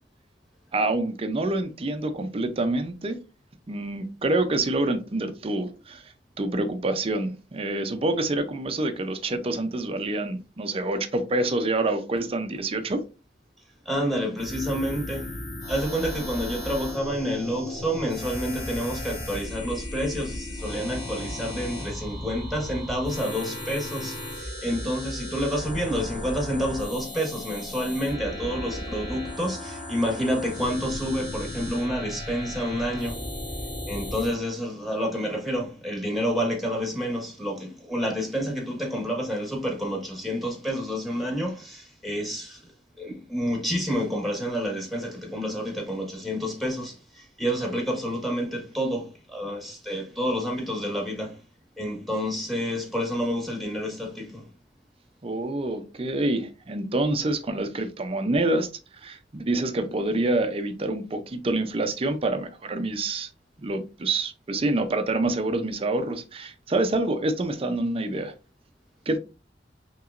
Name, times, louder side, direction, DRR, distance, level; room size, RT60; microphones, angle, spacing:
voice 1, 0.7-3.2 3.7-13.0 55.2-58.7 59.0-63.3 63.6-68.3 69.1-69.2, right 2 dB, 30° right, 0.5 m, -27 dB
voice 2, 13.8-15.4 15.7-33.3 33.9-42.7 43.0-51.4 51.8-54.5, equal, ahead, 1.3 m, -29 dB
sound 1, 14.4-34.3, left 1 dB, 40° left, 2.5 m, -35 dB
5.7 x 3.0 x 2.5 m
head